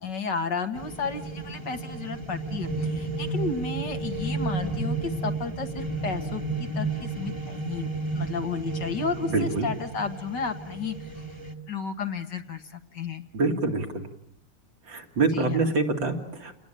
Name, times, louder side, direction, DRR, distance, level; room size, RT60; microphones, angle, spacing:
voice 1, 0.0-11.3 11.7-13.2 15.3-15.6, left 5 dB, 55° left, 7 dB, 2.1 m, -33 dB
sound 1, 0.7-11.5, right 3 dB, 15° right, 2.1 m, -32 dB
voice 2, 9.2-9.7 13.3-14.0 14.9-16.5, right 3 dB, 60° right, 3 dB, 3.3 m, -26 dB
29.5 x 20.0 x 8.9 m, 0.69 s
omnidirectional pair, 2.4 m